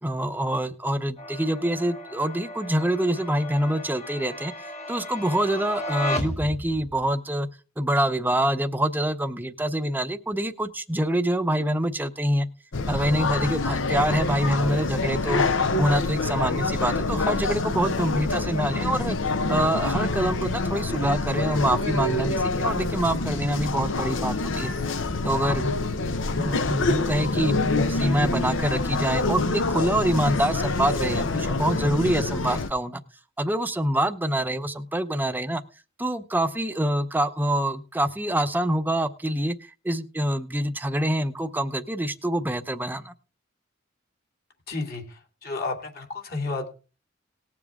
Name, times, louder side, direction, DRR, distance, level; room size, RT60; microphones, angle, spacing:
voice 1, 0.0-7.5 7.8-12.5 12.9-15.4 15.8-19.2 19.5-24.7 25.2-25.7 26.4-27.5 27.9-33.0 33.4-35.6 36.0-43.1, right 1 dB, 10° right, 8 dB, 0.7 m, -26 dB
sound 1, 1.2-7.1, left 1 dB, 35° left, 1.2 m, -35 dB
sound 2, 12.7-32.7, left 3 dB, 80° left, 0.9 m, -26 dB
voice 2, 44.7-46.7, left 3 dB, 50° left, 2 dB, 2.6 m, -32 dB
19.0 x 7.2 x 3.6 m, 0.34 s
head